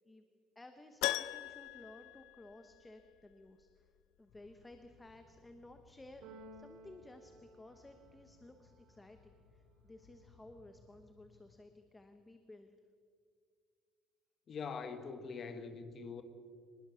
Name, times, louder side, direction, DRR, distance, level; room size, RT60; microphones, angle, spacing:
voice 1, 0.5-3.9 4.2-6.2 6.5-12.7, left 2 dB, 10° left, 0.9 m, -56 dB
Keyboard (musical), 1.0-3.1 3.3-3.4 6.1-6.2 6.4-6.5, left 16 dB, 90° left, 0.5 m, -39 dB
sound 1, 4.3-11.5, left 4 dB, 70° left, 6.9 m, -66 dB
Keyboard (musical) 2, 6.2-8.3, right 2 dB, 65° right, 2.4 m, -56 dB
voice 2, 14.5-16.2, left 5 dB, 30° left, 1.5 m, -43 dB
24.5 x 20.5 x 6.9 m
cardioid pair, 175°, 0 cm